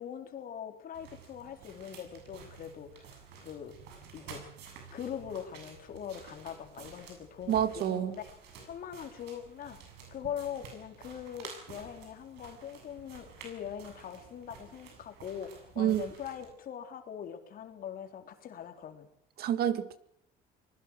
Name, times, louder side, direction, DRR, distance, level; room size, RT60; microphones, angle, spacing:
voice 1, 0.0-3.1 3.4-3.7 4.1-4.4 4.9-8.3 8.6-9.8 10.1-19.1, left 9 dB, 60° left, 3.7 m, -42 dB
sound 1, 0.9-16.5, right 6 dB, 90° right, 7.5 m, -51 dB
voice 2, 7.5-8.2 15.8-16.1 19.4-20.0, right 10 dB, 65° right, 2.0 m, -28 dB
26.0 x 20.5 x 6.4 m
cardioid pair, 110°, 17 cm